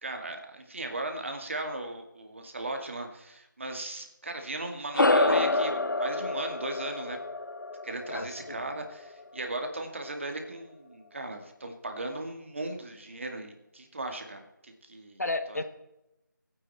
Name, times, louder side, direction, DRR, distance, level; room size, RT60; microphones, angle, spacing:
voice 1, 0.0-7.2 7.8-15.2 15.5-15.6, right 2 dB, 40° right, 4 dB, 2.3 m, -37 dB
sound 1, 4.9-9.7, left 2 dB, 75° left, 1.2 m, -28 dB
voice 2, 8.1-8.6 15.2-15.6, left 2 dB, 55° left, 8 dB, 1.6 m, -32 dB
25.0 x 9.7 x 4.4 m, 0.88 s
figure-of-eight pair, 170°, 11 cm